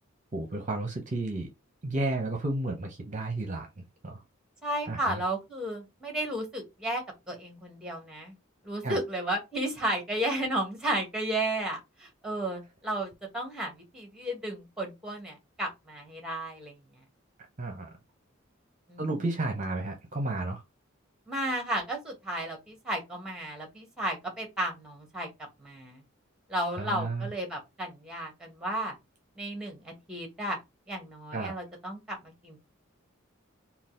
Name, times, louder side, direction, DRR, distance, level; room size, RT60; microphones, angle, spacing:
voice 1, 0.3-1.5 1.8-3.7 4.0-4.2 4.9-5.2 8.8-9.0 17.6-17.9 19.0-20.6 26.8-27.3 31.3-31.5, right 2 dB, 35° right, 0.7 m, -32 dB
voice 2, 4.6-8.3 8.6-16.8 18.9-19.2 21.3-25.3 25.6-26.0 26.5-29.0 29.4-30.6 30.9-32.6, right 1 dB, 5° right, 1.3 m, -33 dB
3.9 x 2.4 x 3.7 m
head